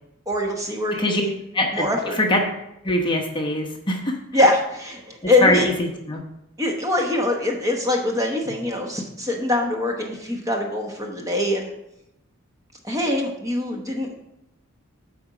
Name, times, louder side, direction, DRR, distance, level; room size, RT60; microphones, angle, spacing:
voice 1, 0.3-1.4 1.7-2.2 4.3-5.6 6.6-11.7 12.8-14.1, left 1 dB, 15° right, 1 dB, 1.0 m, -23 dB
voice 2, 1.5-2.4 2.8-4.2 5.4-6.2, left 1 dB, 20° left, 1 dB, 1.0 m, -22 dB
8.6 x 4.3 x 6.1 m, 0.84 s
head